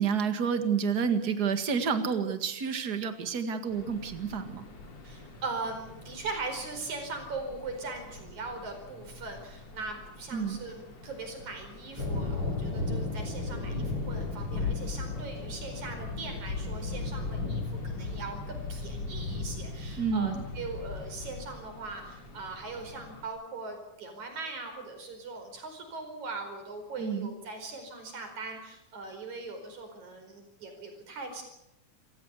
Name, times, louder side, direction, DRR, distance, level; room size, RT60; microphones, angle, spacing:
voice 1, 0.0-4.7 10.3-10.6 20.0-20.4 27.0-27.3, right 6 dB, 35° right, 8 dB, 2.0 m, -29 dB
sound 1, 3.7-23.3, left 2 dB, 55° left, 4.1 m, -49 dB
voice 2, 5.0-31.4, right 3 dB, 70° right, 5 dB, 6.1 m, -40 dB
sound 2, 12.0-21.5, left 3 dB, 40° left, 4.9 m, -34 dB
28.0 x 15.5 x 8.3 m, 0.87 s
omnidirectional pair, 3.5 m